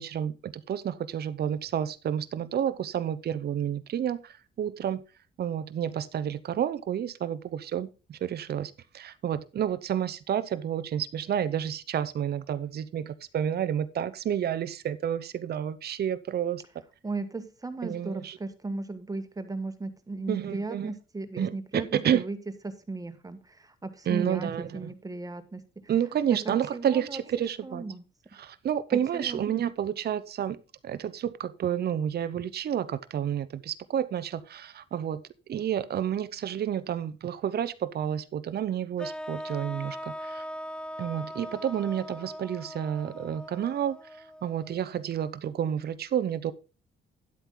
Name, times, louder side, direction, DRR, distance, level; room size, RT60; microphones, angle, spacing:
voice 1, 0.0-5.0 5.4-16.6 17.8-18.4 20.3-20.9 21.4-22.2 24.1-24.9 25.9-27.8 28.3-30.6 30.8-35.2 35.5-40.4 41.0-46.5, right 9 dB, 55° right, 0.8 m, -30 dB
voice 2, 17.0-22.4 22.6-25.9 26.3-27.2 27.6-28.0 28.3-28.4 28.9-29.4, right 3 dB, 20° right, 1.5 m, -36 dB
sound 1, 39.0-45.1, equal, 5° left, 0.5 m, -40 dB
11.0 x 8.2 x 3.8 m
cardioid pair, 90°, 20 cm